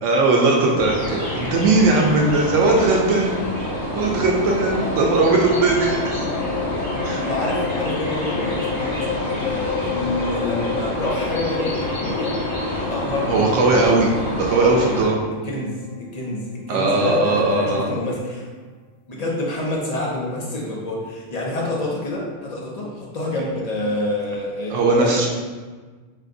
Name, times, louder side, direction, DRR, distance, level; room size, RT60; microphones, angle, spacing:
voice 1, 0.0-3.4 3.9-6.3 7.0-7.2 13.3-14.1 14.4-15.2 16.7-17.9 24.7-25.3, right 3 dB, 75° right, -1 dB, 0.9 m, -19 dB
sound 1, 0.7-15.1, left 1 dB, 60° left, 1.4 m, -27 dB
sound 2, 4.6-16.8 17.1-17.2 17.4-17.5 17.8-17.9, left 6 dB, 90° left, 1.0 m, -32 dB
voice 2, 7.1-12.4 12.9-13.9 15.4-18.5 19.1-25.3, left 1 dB, 35° left, -4 dB, 0.8 m, -27 dB
4.6 x 2.5 x 3.7 m, 1.4 s
omnidirectional pair, 1.3 m